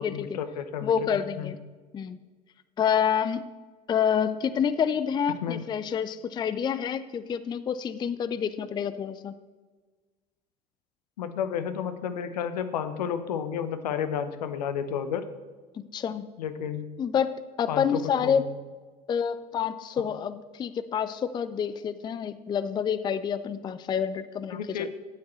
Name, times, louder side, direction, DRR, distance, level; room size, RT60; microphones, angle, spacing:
voice 1, 0.0-1.5 5.4-5.6 11.2-15.2 16.4-16.9 17.7-18.5 24.5-24.9, left 8 dB, 70° left, 10 dB, 0.9 m, -31 dB
voice 2, 0.8-1.6 1.9-2.2 2.8-3.5 3.9-9.3 15.7-16.3 17.0-17.3 17.6-18.4 19.1-24.9, left 7 dB, 20° left, 14 dB, 0.4 m, -28 dB
13.0 x 9.4 x 3.1 m, 1.4 s
figure-of-eight pair, 70°, 21 cm